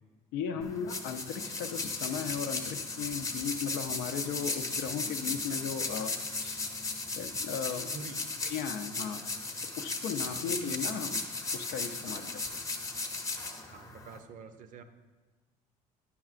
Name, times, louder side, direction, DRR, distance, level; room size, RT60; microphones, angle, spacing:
voice 1, 0.3-6.1 6.4-6.7 7.2-7.9 8.4-9.2 9.8-11.2 11.5-12.4, left 7 dB, 80° left, 8 dB, 0.5 m, -36 dB
sound 1, 0.6-14.2, left 3 dB, 20° left, 0.7 m, -36 dB
voice 2, 7.8-8.3 10.2-11.0 12.1-12.3 13.7-14.8, right 5 dB, 55° right, 8 dB, 0.6 m, -47 dB
9.5 x 5.6 x 2.5 m, 1.3 s
cardioid pair, 100°, 16 cm